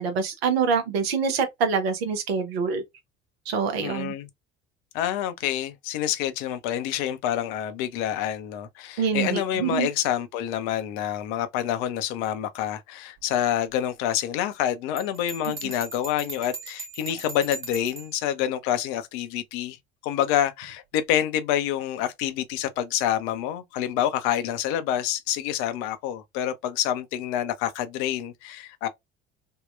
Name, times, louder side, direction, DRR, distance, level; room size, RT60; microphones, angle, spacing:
voice 1, 0.0-2.8 3.5-4.1 9.0-9.9 15.5-15.6, right 6 dB, 70° right, 0.7 m, -25 dB
voice 2, 3.8-4.3 4.9-19.8 20.0-28.9, left 11 dB, 55° left, 0.6 m, -27 dB
Bell, 15.0-18.2, right 3 dB, 35° right, 1.2 m, -39 dB
3.5 x 2.2 x 2.3 m
figure-of-eight pair, 60°, 32 cm